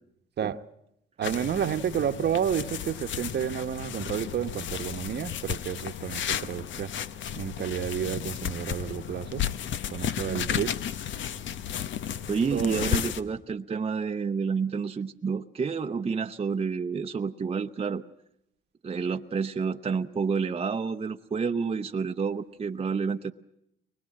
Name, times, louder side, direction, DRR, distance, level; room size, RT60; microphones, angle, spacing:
sound 1, 1.2-13.2, left 9 dB, 70° left, 1.0 m, -33 dB
voice 1, 1.2-6.9 7.4-9.4 9.9-10.8 12.5-13.0, right 9 dB, 55° right, 9 dB, 1.1 m, -30 dB
voice 2, 12.3-18.0 18.8-23.3, right 5 dB, 30° right, 6 dB, 0.8 m, -29 dB
23.5 x 21.0 x 7.6 m, 0.77 s
cardioid pair, 90°, 20 cm